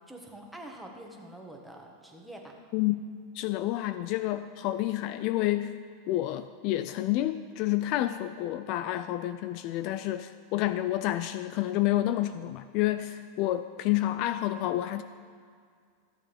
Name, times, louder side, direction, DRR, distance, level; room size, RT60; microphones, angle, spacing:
voice 1, 0.0-2.6, right 1 dB, ahead, 0 dB, 1.3 m, -46 dB
voice 2, 2.7-3.0 3.3-5.8 6.1-15.0, left 14 dB, 50° left, 12 dB, 0.3 m, -29 dB
13.5 x 7.5 x 3.5 m, 2.2 s
supercardioid pair, 135°, 0 cm